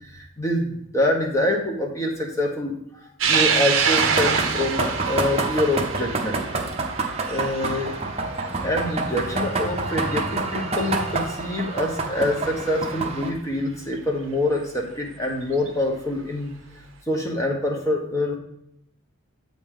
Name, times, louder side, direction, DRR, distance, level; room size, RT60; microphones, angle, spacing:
voice 1, 0.1-2.7 3.3-6.4 7.3-7.9 8.6-16.5 17.1-18.4, left 1 dB, 15° left, 0 dB, 1.0 m, -25 dB
sound 1, 3.2-9.9 10.3-10.4 11.7-11.8 13.9-14.0 15.4-15.7, right 6 dB, 60° right, 0.7 m, -25 dB
sound 2, 3.9-13.3, right 3 dB, 30° right, 0.8 m, -27 dB
7.7 x 5.1 x 3.7 m, 0.74 s
head